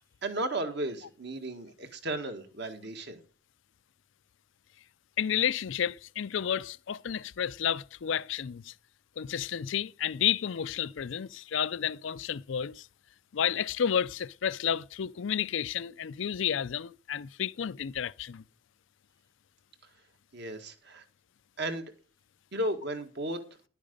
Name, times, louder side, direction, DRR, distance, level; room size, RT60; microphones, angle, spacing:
voice 1, 0.0-3.2 20.3-21.0 21.6-21.9 22.5-23.4, right 1 dB, 55° right, 1.8 m, -34 dB
voice 2, 5.2-8.7 9.2-12.9 13.3-18.4, left 9 dB, 65° left, 0.4 m, -31 dB
11.5 x 8.8 x 5.3 m
head